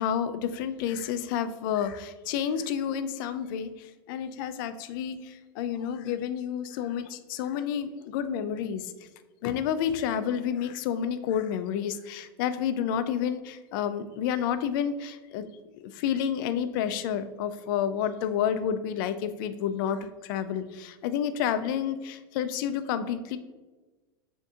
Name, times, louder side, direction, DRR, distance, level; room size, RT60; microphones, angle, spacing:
voice 1, 0.0-8.9 9.4-15.5 15.9-23.4, left 8 dB, 65° left, 11 dB, 0.4 m, -30 dB
7.2 x 2.7 x 2.4 m, 1.2 s
supercardioid pair, 115°, 12 cm